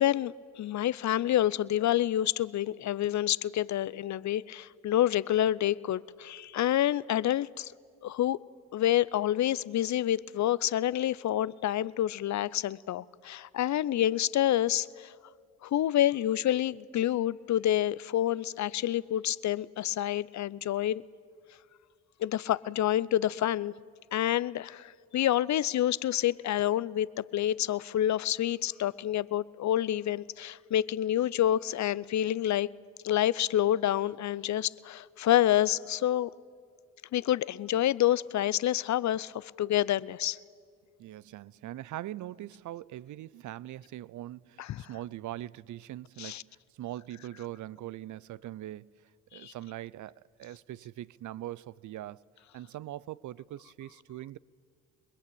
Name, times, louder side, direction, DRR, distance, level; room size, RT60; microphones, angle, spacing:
voice 1, 0.0-7.7 8.0-8.4 8.7-15.1 15.6-21.0 22.2-23.7 24.1-27.1 27.3-32.7 33.0-36.3 37.1-40.4 44.6-44.8 46.2-46.4 49.3-49.5, left 12 dB, 55° left, 0.6 m, -28 dB
voice 2, 41.0-46.4 46.7-52.2 52.5-54.4, right 14 dB, 65° right, 0.6 m, -42 dB
28.5 x 20.5 x 8.7 m
supercardioid pair, 60°, 33 cm